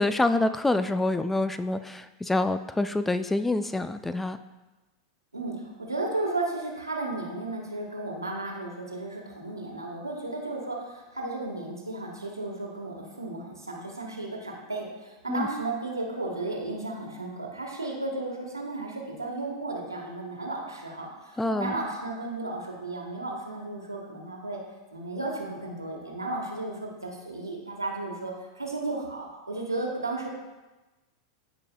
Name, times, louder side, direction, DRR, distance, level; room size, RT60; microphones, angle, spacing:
voice 1, 0.0-4.4 15.3-15.5 21.4-21.8, left 2 dB, 10° left, 11 dB, 0.4 m, -26 dB
voice 2, 5.3-24.6 24.9-30.3, right 2 dB, 90° right, 0 dB, 1.5 m, -34 dB
14.5 x 5.4 x 2.3 m, 1.1 s
figure-of-eight pair, 90°, 2 cm